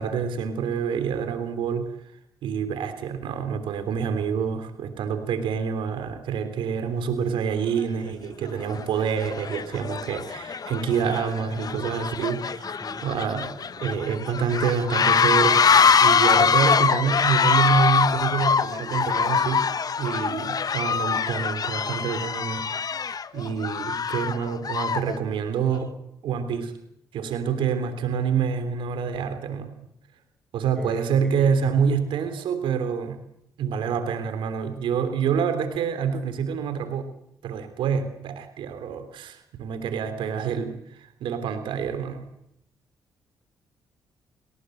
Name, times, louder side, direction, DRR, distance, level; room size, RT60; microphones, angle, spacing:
voice 1, 0.0-1.9 2.4-13.5 13.8-22.7 23.3-25.9 26.2-26.8 27.1-29.7 30.5-33.2 33.6-37.1 37.4-42.3, right 6 dB, 75° right, 9 dB, 3.3 m, -27 dB
sound 1, 7.8-7.9 8.6-8.8 9.2-25.2, left 6 dB, 50° left, 1.1 m, -23 dB
voice 2, 12.5-13.0 30.8-31.5, equal, 5° left, 10 dB, 5.7 m, -39 dB
29.5 x 18.5 x 8.0 m, 0.79 s
supercardioid pair, 50°, 9 cm